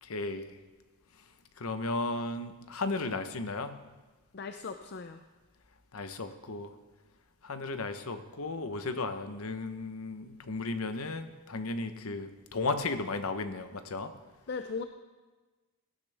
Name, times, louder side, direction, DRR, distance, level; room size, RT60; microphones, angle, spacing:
voice 1, 0.0-0.5 1.6-3.8 5.9-6.7 7.4-14.1, left 3 dB, 70° left, 9 dB, 0.9 m, -35 dB
voice 2, 4.3-5.2 14.5-14.8, left 4 dB, 50° left, 7 dB, 0.5 m, -38 dB
18.0 x 10.5 x 3.4 m, 1.2 s
head